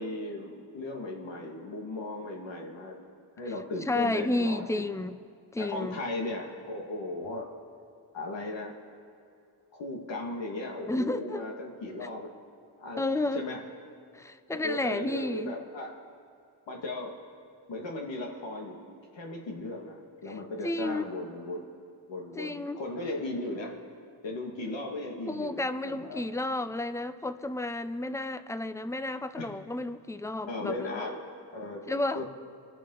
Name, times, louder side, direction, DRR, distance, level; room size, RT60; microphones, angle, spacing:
voice 1, 0.0-3.0 3.4-4.9 5.6-7.4 8.1-8.8 9.7-12.3 12.8-13.6 14.5-15.9 16.7-17.2 17.7-21.7 22.1-23.8 24.2-26.2 30.5-32.3, left 2 dB, 80° left, 0 dB, 2.1 m, -37 dB
voice 2, 3.9-5.2 5.5-6.0 10.9-11.5 13.0-13.4 14.1-15.5 20.6-21.1 22.3-22.8 25.3-31.1 31.9-32.2, left 2 dB, 5° left, 12 dB, 0.6 m, -31 dB
26.0 x 10.0 x 3.9 m, 2.4 s
cardioid pair, 85°, 43 cm